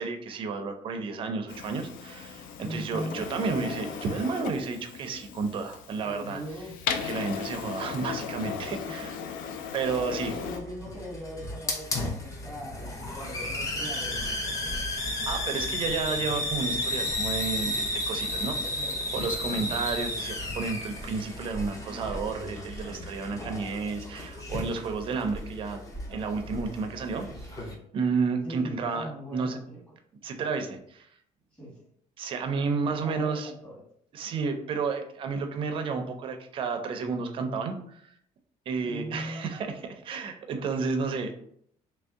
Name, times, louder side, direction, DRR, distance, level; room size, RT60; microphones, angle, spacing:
voice 1, 0.0-6.4 7.0-9.1 9.7-10.3 15.3-18.8 19.1-29.6 30.2-31.1 32.2-33.5 34.1-38.1 38.7-41.3, right 4 dB, 40° right, 6 dB, 0.4 m, -31 dB
Printer, 1.5-10.6, left 7 dB, 90° left, 0.4 m, -37 dB
voice 2, 2.6-3.2 6.0-6.8 9.2-9.6 10.3-14.8 18.6-19.3 23.4-23.7 28.4-29.8 31.5-31.8 32.8-33.7 38.8-39.5, equal, 5° left, -7 dB, 1.3 m, -40 dB
Hiss, 9.8-27.7, left 1 dB, 25° left, 0.5 m, -33 dB
3.1 x 2.6 x 3.4 m, 0.68 s
cardioid pair, 170°, 14 cm